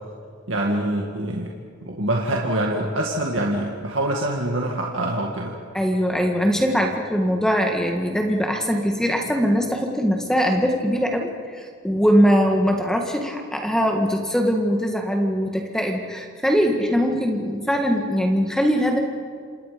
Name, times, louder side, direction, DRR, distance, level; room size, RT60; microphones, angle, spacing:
voice 1, 0.5-1.5 1.8-5.5, right 1 dB, 80° right, -1 dB, 2.1 m, -25 dB
voice 2, 5.7-19.0, equal, 5° left, 2 dB, 1.7 m, -21 dB
27.5 x 27.0 x 5.2 m, 2.1 s
head